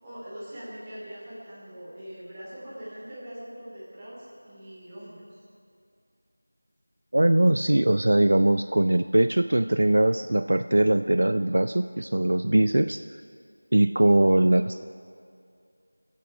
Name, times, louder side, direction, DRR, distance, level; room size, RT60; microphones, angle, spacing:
voice 1, 0.0-5.4, equal, 10° right, -10 dB, 2.7 m, -42 dB
voice 2, 7.1-13.0 13.7-14.8, right 1 dB, 60° right, 10 dB, 0.3 m, -21 dB
22.0 x 8.4 x 5.0 m, 2.4 s
figure-of-eight pair, 175°, 0 cm